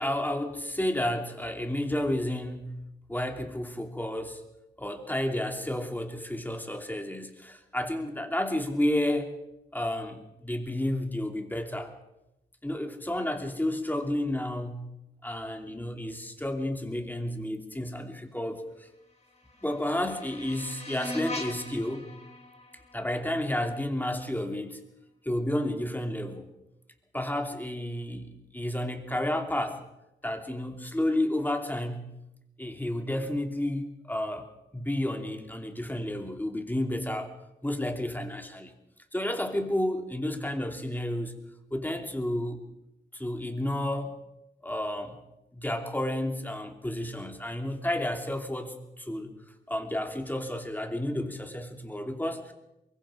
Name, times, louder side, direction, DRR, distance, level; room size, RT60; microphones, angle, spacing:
voice 1, 0.0-2.8 3.1-4.4 4.8-9.3 9.7-11.9 12.6-14.9 15.2-18.9 19.6-22.1 22.9-24.8 25.2-26.5 27.1-29.8 30.2-32.1 32.6-37.3 37.6-38.7 39.1-41.3 41.7-42.6 43.1-44.2 44.6-45.2 45.5-49.3 49.7-52.5, left 1 dB, 10° left, 4 dB, 3.0 m, -31 dB
sound 1, 19.0-24.1, left 1 dB, 35° left, 4.4 m, -41 dB
23.5 x 22.5 x 5.1 m, 0.91 s
cardioid pair, 75°, 19 cm